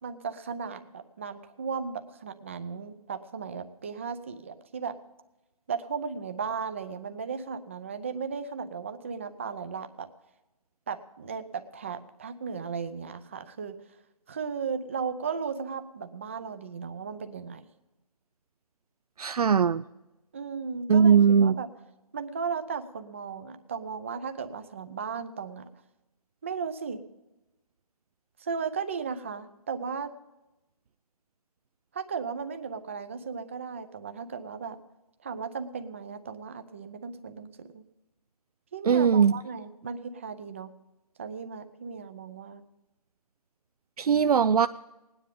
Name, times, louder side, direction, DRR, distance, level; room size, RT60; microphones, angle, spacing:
voice 1, 0.0-5.0 5.7-10.1 10.9-13.8 14.3-17.6 20.3-21.7 22.1-25.6 26.4-27.0 28.4-30.1 31.9-34.8 35.2-37.8 38.7-40.7 41.2-42.6, right 6 dB, 20° right, 9 dB, 0.6 m, -36 dB
voice 2, 19.2-19.8 20.9-21.5 38.9-39.3 44.0-44.7, right 7 dB, 75° right, 12 dB, 0.5 m, -20 dB
17.5 x 10.0 x 5.2 m, 1.0 s
hypercardioid pair, 170°, 19 cm